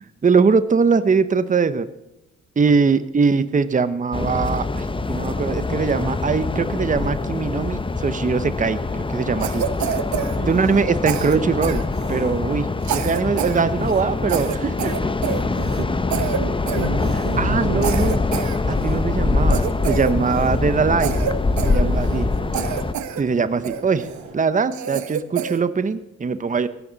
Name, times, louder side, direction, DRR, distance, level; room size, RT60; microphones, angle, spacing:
voice 1, 0.0-1.9 2.6-9.7 10.5-11.8 12.1-12.7 12.9-15.1 17.4-18.2 18.7-21.2 21.6-22.2 23.2-24.1 24.3-26.7, right 5 dB, 25° right, 13 dB, 1.0 m, -21 dB
sound 1, 4.1-22.9, left 3 dB, 15° left, 0.9 m, -24 dB
Cough, 9.4-10.8 11.1-12.3 12.8-13.6 13.9-14.0 14.3-15.8 16.1-16.4 16.7-17.3 17.8-19.0 19.5-20.6 21.0-22.2 22.5-23.2 23.6-24.2 24.7-25.6, right 9 dB, 70° right, 1.3 m, -28 dB
voice 2, 10.2-10.7 15.5-15.9 16.2-17.9 18.6-18.9 21.7-22.4, right 9 dB, 85° right, 11 dB, 1.4 m, -32 dB
sound 2, 14.4-24.4, right 3 dB, 40° right, 5.8 m, -41 dB
17.5 x 15.0 x 4.1 m, 0.90 s
cardioid pair, 90°, 30 cm